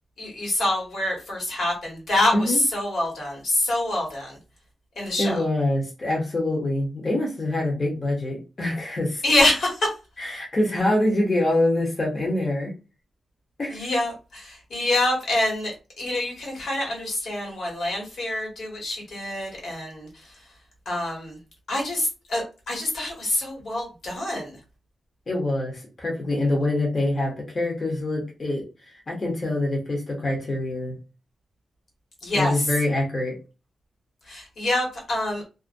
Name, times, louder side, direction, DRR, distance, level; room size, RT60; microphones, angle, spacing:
voice 1, 0.2-4.4 5.0-5.4 9.2-9.9 13.7-20.3 20.8-21.4 21.7-24.6 32.2-32.7 34.3-35.4, left 1 dB, 65° left, -2 dB, 1.3 m, -26 dB
voice 2, 5.2-9.2 10.2-12.7 13.6-13.9 25.3-31.0 32.3-33.4, left 1 dB, 35° left, -1 dB, 0.7 m, -25 dB
2.4 x 2.1 x 2.5 m, 0.31 s
wide cardioid pair, 125°, 0 cm